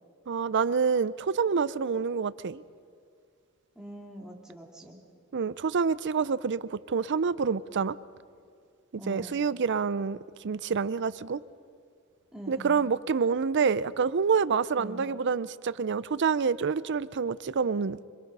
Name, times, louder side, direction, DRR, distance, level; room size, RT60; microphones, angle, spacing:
voice 1, 0.3-2.6 5.3-8.0 8.9-11.4 12.5-18.0, right 5 dB, 55° right, 0.5 m, -27 dB
voice 2, 3.7-5.0 9.0-9.4 12.3-12.9 14.7-15.1, equal, 5° right, 2.8 m, -43 dB
26.0 x 22.0 x 5.5 m
head